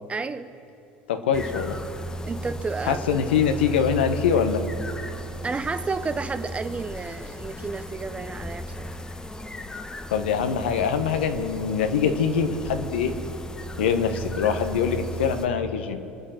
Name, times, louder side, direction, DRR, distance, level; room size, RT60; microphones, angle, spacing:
voice 1, 0.1-0.5 2.3-3.2 5.4-9.0, right 4 dB, 20° right, 12 dB, 0.8 m, -31 dB
voice 2, 1.1-1.8 2.8-4.6 10.1-13.1 13.8-16.0, left 7 dB, 75° left, 7 dB, 1.2 m, -24 dB
sound 1, 1.3-15.5, right 1 dB, 10° left, 1.2 m, -35 dB
25.0 x 8.8 x 5.9 m, 2.6 s
figure-of-eight pair, 70°, 6 cm